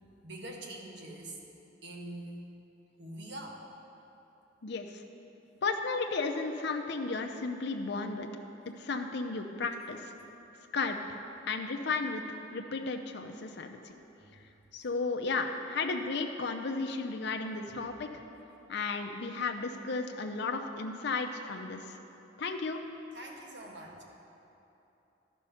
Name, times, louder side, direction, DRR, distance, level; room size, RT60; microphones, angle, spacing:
voice 1, 0.2-1.4 1.8-2.5 3.0-3.6 23.1-24.0, right 1 dB, 65° right, 0 dB, 1.3 m, -44 dB
voice 2, 4.6-5.0 5.6-8.3 8.8-10.1 10.7-11.2 11.5-14.0 14.7-18.1 18.7-22.0 22.4-22.8, left 4 dB, 65° left, 5 dB, 0.6 m, -34 dB
13.0 x 5.4 x 5.6 m, 2.9 s
head